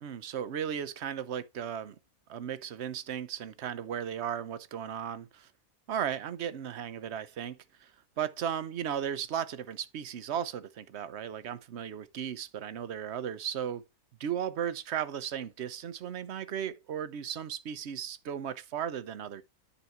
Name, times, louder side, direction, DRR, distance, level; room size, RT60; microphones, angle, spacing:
voice 1, 0.0-1.9 2.3-5.5 5.9-13.8 14.2-19.4, right 9 dB, 55° right, 0.9 m, -36 dB
10.0 x 4.1 x 4.4 m
omnidirectional pair, 1.6 m